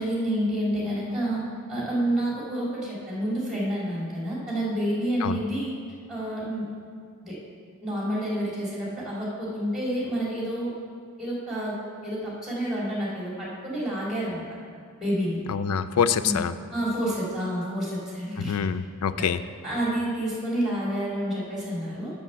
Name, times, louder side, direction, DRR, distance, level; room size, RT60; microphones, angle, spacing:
voice 1, 0.0-1.4 1.7-5.7 6.1-6.6 7.2-7.4 7.8-10.7 11.2-11.8 12.0-14.4 15.0-15.4 16.2-16.4 16.7-18.5 19.1-19.2 19.6-22.1, right 1 dB, ahead, -6 dB, 2.7 m, -29 dB
voice 2, 15.5-16.5 18.4-19.4, left 7 dB, 85° left, 12 dB, 0.4 m, -25 dB
7.4 x 6.6 x 6.7 m, 2.1 s
head